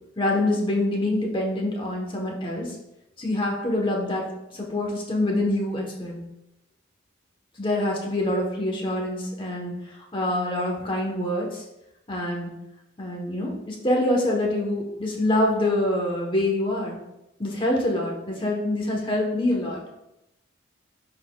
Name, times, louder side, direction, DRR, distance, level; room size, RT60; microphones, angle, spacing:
voice 1, 0.2-2.8 3.2-6.2 7.6-9.7 10.1-11.6 12.1-12.5 13.0-17.0 17.4-19.8, left 1 dB, 25° left, 0 dB, 1.1 m, -25 dB
11.0 x 4.1 x 2.3 m, 0.89 s
head